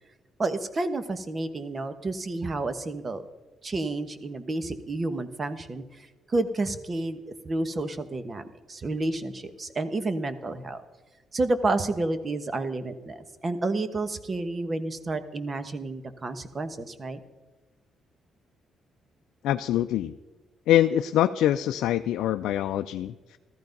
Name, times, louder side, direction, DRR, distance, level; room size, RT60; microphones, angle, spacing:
voice 1, 0.4-3.2 3.6-7.2 7.4-8.4 8.7-10.8 11.3-17.2, right 2 dB, 35° right, 11 dB, 1.3 m, -30 dB
voice 2, 19.4-20.1 20.7-23.4, left 12 dB, 85° left, 8 dB, 0.4 m, -24 dB
14.0 x 14.0 x 5.3 m, 1.1 s
cardioid pair, 90°, 0 cm